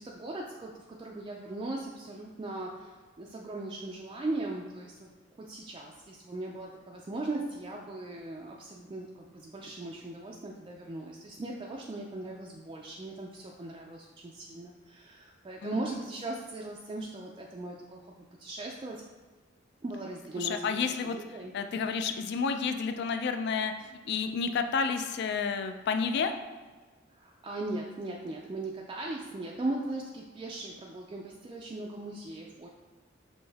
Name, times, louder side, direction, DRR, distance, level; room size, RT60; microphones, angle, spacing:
voice 1, 0.0-5.1 5.4-19.0 19.8-20.8 21.1-21.5 27.1-32.7, right 2 dB, 25° right, -2 dB, 0.3 m, -38 dB
voice 2, 20.4-21.2 21.5-26.3, left 5 dB, 55° left, 8 dB, 0.3 m, -30 dB
5.3 x 2.6 x 3.4 m, 1.3 s
head